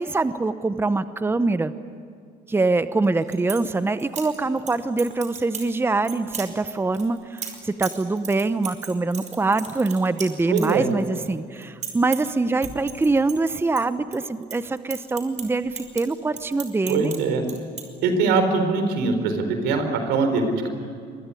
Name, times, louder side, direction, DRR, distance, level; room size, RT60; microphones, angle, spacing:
voice 1, 0.0-1.7 2.5-17.1, right 3 dB, 15° right, 12 dB, 0.9 m, -24 dB
sound 1, 3.0-3.6 4.0-4.7 5.0-5.7 6.0-6.5 6.9-11.3 11.5-12.3 12.6-14.2 14.4-17.2 17.4-17.8, right 7 dB, 45° right, 5.1 m, -35 dB
voice 2, 10.5-10.9 16.9-17.5 18.0-20.7, right 4 dB, 90° right, 7 dB, 4.3 m, -22 dB
25.0 x 22.0 x 9.9 m, 2.2 s
cardioid pair, 110°, 17 cm